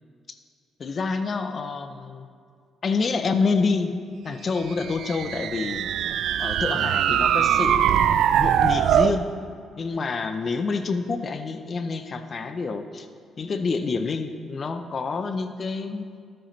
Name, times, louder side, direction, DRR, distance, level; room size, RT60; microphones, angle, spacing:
voice 1, 0.8-2.3 2.8-3.9 4.2-5.9 6.4-8.0 8.4-9.3 9.8-13.1 13.4-16.1, left 4 dB, 45° left, 9 dB, 0.6 m, -27 dB
sound 1, 4.8-9.2, right 9 dB, 75° right, 0.3 m, -22 dB
13.0 x 9.1 x 3.2 m, 2.1 s
cardioid pair, 90°, 0 cm